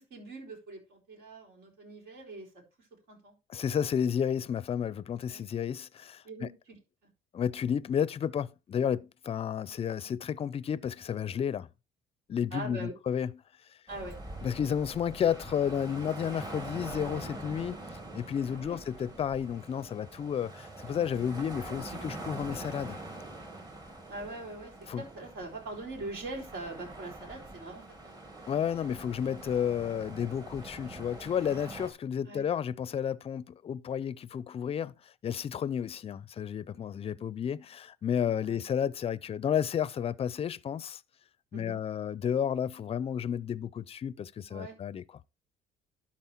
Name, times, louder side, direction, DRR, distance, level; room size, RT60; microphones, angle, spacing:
voice 1, 0.1-2.5 3.1-3.3 5.3-5.5 6.2-6.8 12.5-12.9 13.9-14.2 18.5-18.8 24.1-28.2 32.2-32.4 38.5-38.6 41.5-41.8 44.5-44.8, right 2 dB, 65° right, 4.1 m, -42 dB
voice 2, 3.5-6.5 7.3-11.7 12.3-13.3 14.4-17.8 18.1-23.0 24.9-25.0 28.5-34.9 35.2-41.0 41.5-45.0, left 8 dB, 35° left, 0.5 m, -32 dB
sound 1, 13.9-31.9, right 2 dB, 25° right, 2.1 m, -44 dB
12.0 x 4.3 x 4.4 m
cardioid pair, 110°, 17 cm